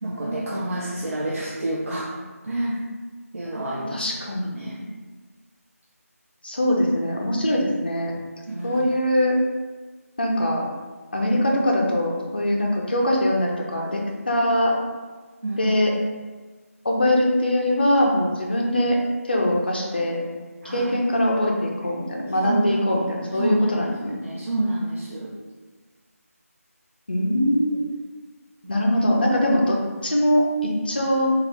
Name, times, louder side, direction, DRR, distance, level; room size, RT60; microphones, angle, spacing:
voice 1, 0.0-2.1 2.4-2.8 3.3-4.0 4.3-4.8 8.5-8.8 15.4-15.8 20.6-20.9 22.4-22.8 23.4-25.3 28.6-28.9, right 1 dB, 60° right, -5 dB, 0.5 m, -28 dB
voice 2, 3.9-4.6 6.4-8.1 8.6-9.4 10.2-10.6 11.1-14.8 15.6-15.9 16.8-19.0 19.2-20.2 20.6-24.1 27.1-27.8 28.7-31.3, left 1 dB, 40° left, -1 dB, 0.5 m, -22 dB
3.2 x 2.4 x 2.6 m, 1.3 s
figure-of-eight pair, 175°, 8 cm